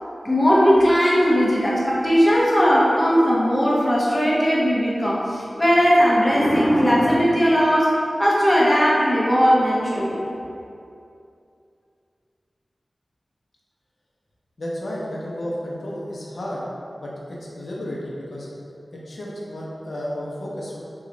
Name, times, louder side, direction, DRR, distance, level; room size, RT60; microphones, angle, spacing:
voice 1, 0.2-7.9 8.2-10.2, equal, 15° left, -6 dB, 0.8 m, -18 dB
voice 2, 14.6-16.6 17.0-18.5 18.9-20.8, equal, 70° left, -5 dB, 0.6 m, -32 dB
3.0 x 2.3 x 3.8 m, 2.6 s
cardioid pair, 45°, 0 cm